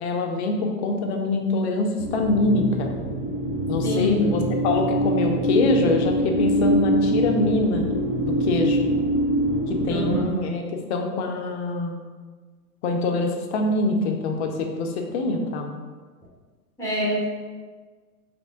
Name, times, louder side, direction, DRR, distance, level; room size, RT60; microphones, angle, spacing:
voice 1, 0.0-2.9 3.7-7.8 8.2-8.8 9.7-12.0 12.8-15.7, left 3 dB, 45° left, 3 dB, 0.6 m, -24 dB
sound 1, 2.0-10.2, right 1 dB, 25° right, 0.4 m, -24 dB
voice 2, 3.8-4.3 9.9-10.2 16.8-17.4, left 1 dB, 5° left, -5 dB, 0.8 m, -25 dB
3.3 x 2.9 x 2.7 m, 1.5 s
hypercardioid pair, 110°, 48 cm